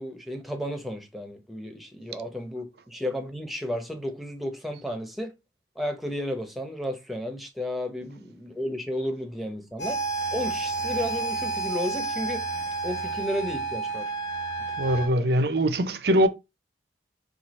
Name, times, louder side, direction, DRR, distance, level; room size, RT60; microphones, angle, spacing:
voice 1, 0.0-5.3 5.8-10.0 10.3-12.5 12.8-14.1 15.2-15.3, left 1 dB, ahead, 0.7 m, -33 dB
sound 1, 9.8-15.1, right 4 dB, 65° left, 1.3 m, -30 dB
voice 2, 14.8-16.3, right 1 dB, 55° right, 0.5 m, -22 dB
4.5 x 2.4 x 4.1 m
head